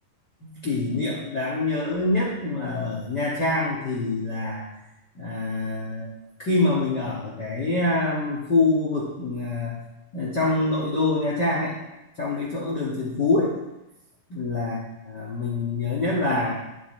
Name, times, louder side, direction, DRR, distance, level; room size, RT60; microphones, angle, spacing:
voice 1, 0.4-4.7 5.1-6.1 6.4-9.8 10.1-11.8 12.2-13.6 14.3-14.8 15.1-16.5, left 2 dB, 40° left, -5 dB, 1.6 m, -25 dB
11.5 x 8.2 x 4.4 m, 0.95 s
omnidirectional pair, 4.0 m